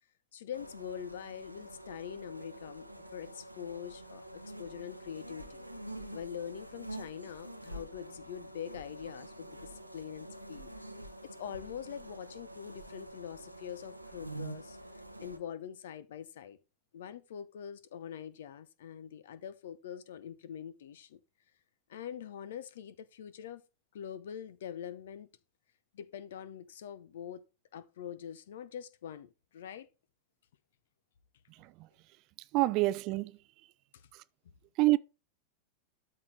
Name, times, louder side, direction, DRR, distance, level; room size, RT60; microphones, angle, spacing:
voice 1, 0.3-5.6 6.1-10.7 11.2-14.8 15.2-16.6 16.9-21.2 21.9-23.6 23.9-25.3 25.9-27.4 27.7-29.9 33.9-34.1, left 8 dB, 60° left, 0.7 m, -44 dB
sound 1, 0.5-15.4, right 1 dB, 90° right, 0.8 m, -47 dB
voice 2, 32.5-33.3 34.8-35.0, right 19 dB, 40° right, 0.4 m, -26 dB
12.5 x 4.3 x 3.3 m
figure-of-eight pair, 90°, 0 cm